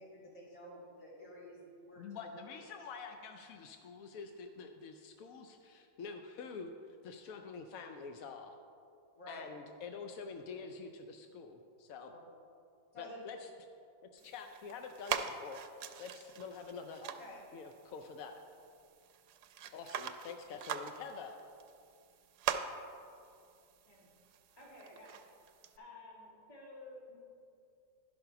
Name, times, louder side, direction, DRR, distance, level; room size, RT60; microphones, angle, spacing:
voice 1, 0.0-2.4 9.1-9.5 12.1-12.2 12.9-13.2 14.1-14.3 17.0-17.4, left 1 dB, 50° left, -8 dB, 3.3 m, -51 dB
voice 2, 2.0-6.7 7.0-8.6 9.3-12.1 13.0-13.5 14.1-15.6 16.0-17.0 17.5-18.3 19.7-21.3, left 5 dB, 70° left, 5 dB, 0.8 m, -47 dB
sound 1, 14.2-25.8, right 8 dB, 70° right, 1.0 m, -44 dB
voice 3, 24.5-25.2 25.8-27.2, left 2 dB, 15° left, -4 dB, 1.9 m, -53 dB
11.5 x 5.4 x 5.7 m, 2.4 s
omnidirectional pair, 2.0 m